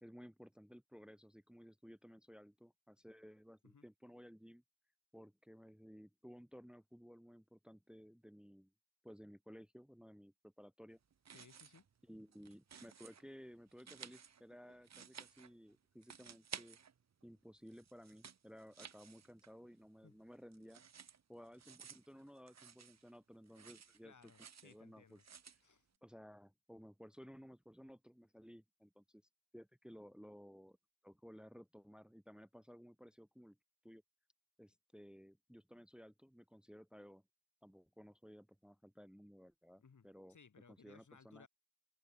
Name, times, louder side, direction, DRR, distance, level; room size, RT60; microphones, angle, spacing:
voice 1, 0.0-4.6 5.1-8.7 9.0-11.0 12.1-16.8 17.2-20.8 21.3-24.3 24.6-25.2 26.0-29.2 29.5-30.8 31.0-33.6 33.8-34.0 34.6-37.2 37.6-40.4 40.7-41.5, equal, ahead, 1.5 m, -57 dB
sound 1, 11.1-11.9 12.2-13.2 13.7-15.7 16.0-17.2 17.6-19.7 20.0-23.2 23.5-24.8 25.1-25.6, right 7 dB, 45° right, 0.9 m, -55 dB
voice 2, 11.3-11.8 20.0-20.2 24.0-25.2 25.6-25.9 39.8-41.5, left 5 dB, 50° left, 2.1 m, -63 dB
open air
cardioid pair, 50°, 39 cm